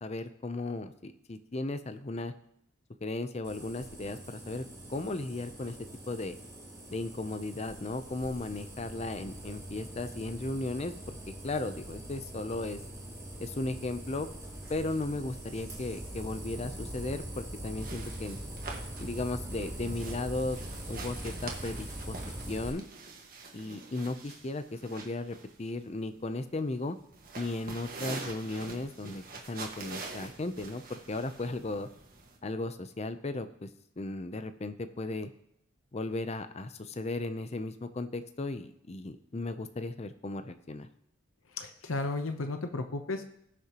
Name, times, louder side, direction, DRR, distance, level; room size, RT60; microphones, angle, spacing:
voice 1, 0.0-2.3 3.0-4.6 4.9-5.8 6.1-6.4 6.9-12.8 13.4-14.3 14.7-18.4 19.0-20.6 20.9-22.2 22.5-22.8 23.5-27.0 27.4-31.9 32.4-33.7 34.0-35.3 35.9-40.9, left 2 dB, 30° left, 10 dB, 0.5 m, -36 dB
sound 1, 3.4-22.7, right 1 dB, 15° right, 3.1 m, -43 dB
sound 2, 17.8-32.4, right 3 dB, 45° right, 1.6 m, -45 dB
voice 2, 41.6-43.2, left 2 dB, 85° left, 7 dB, 0.8 m, -34 dB
19.5 x 6.6 x 3.0 m, 0.74 s
head